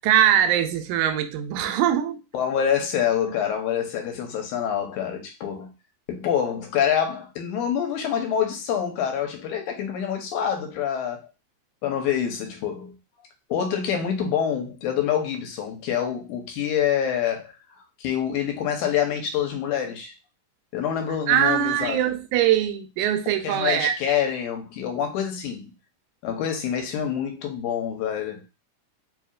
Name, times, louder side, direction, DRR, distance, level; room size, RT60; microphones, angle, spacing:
voice 1, 0.0-2.2 21.3-23.9, right 10 dB, 85° right, 2.0 m, -22 dB
voice 2, 2.3-5.7 6.1-11.3 11.8-12.9 13.5-17.5 18.0-20.1 20.7-22.0 23.4-25.7 26.2-28.4, left 8 dB, 85° left, 2.3 m, -26 dB
4.7 x 2.8 x 2.4 m
omnidirectional pair, 3.4 m